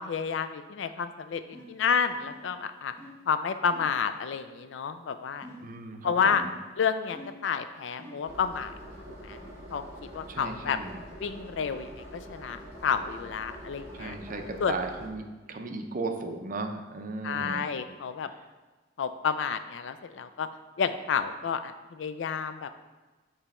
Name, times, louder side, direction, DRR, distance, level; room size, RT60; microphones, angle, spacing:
voice 1, 0.0-2.9 3.3-5.5 6.0-6.4 6.8-8.7 9.2-9.4 9.7-9.8 10.1-10.8 11.2-14.2 14.6-14.8 17.2-18.3 19.0-20.5 20.8-22.7, left 6 dB, 70° left, 10 dB, 0.4 m, -30 dB
sound 1, 1.5-1.8 2.2-2.6 3.0-3.2 3.7-4.0 5.4-5.8 6.3-6.7 7.1-7.5 8.0-8.3, equal, 15° left, 0.9 m, -46 dB
voice 2, 5.6-6.5 10.3-11.0 14.0-17.7, right 3 dB, 45° right, 6 dB, 0.5 m, -36 dB
sound 2, 8.2-15.1, equal, 15° right, 1.9 m, -45 dB
7.0 x 3.3 x 4.2 m, 1.2 s
head